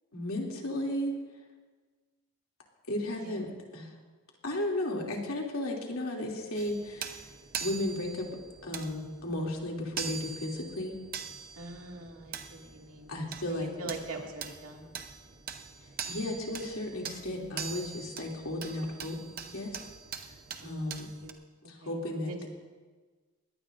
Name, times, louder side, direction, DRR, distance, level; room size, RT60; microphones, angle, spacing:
voice 1, 0.1-1.1 2.9-3.5 3.7-3.9 4.4-7.2 7.6-8.3 8.6-10.9 13.1-13.7 16.1-19.2 19.4-19.7 20.6-21.1 21.7-22.5, left 1 dB, 75° left, -1 dB, 2.8 m, -34 dB
voice 2, 3.1-3.5 11.6-13.2 13.4-14.9 20.6-21.4 21.8-22.0 22.3-22.5, right 2 dB, 80° right, 0 dB, 2.3 m, -43 dB
sound 1, 6.6-21.3, right 7 dB, 40° right, 0.8 m, -43 dB
21.5 x 18.0 x 2.6 m, 1.4 s
head